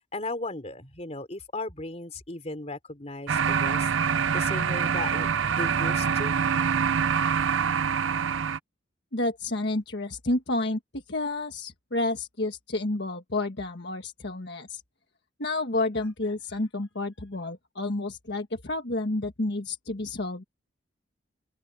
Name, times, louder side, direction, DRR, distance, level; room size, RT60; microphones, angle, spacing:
voice 1, 0.1-3.9 4.3-6.4, left 2 dB, 35° left, 3.5 m, -36 dB
sound 1, 3.3-8.6, right 6 dB, 75° right, 0.5 m, -25 dB
voice 2, 9.1-14.8 15.4-20.4, left 2 dB, 55° left, 1.5 m, -30 dB
open air
head